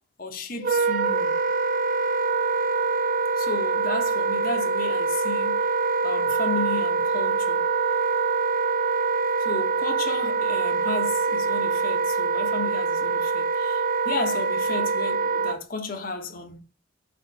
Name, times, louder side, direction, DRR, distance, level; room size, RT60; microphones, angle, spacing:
voice 1, 0.2-1.4 3.4-5.6 6.0-7.7 9.4-16.6, left 4 dB, 45° left, 1.2 m, -33 dB
Wind instrument woodwind instrument, 0.6-15.6, right 4 dB, 45° right, 0.6 m, -24 dB
5.6 x 4.4 x 5.5 m
head